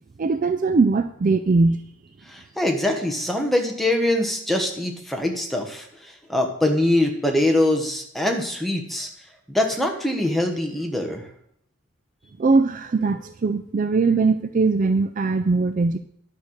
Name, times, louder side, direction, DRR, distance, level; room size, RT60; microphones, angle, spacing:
voice 1, 0.2-1.8 12.4-16.0, right 3 dB, 35° right, 10 dB, 0.3 m, -20 dB
voice 2, 2.3-5.8 6.3-9.1 9.5-11.2, left 1 dB, ahead, 2 dB, 1.1 m, -23 dB
10.5 x 5.6 x 6.4 m, 0.69 s
head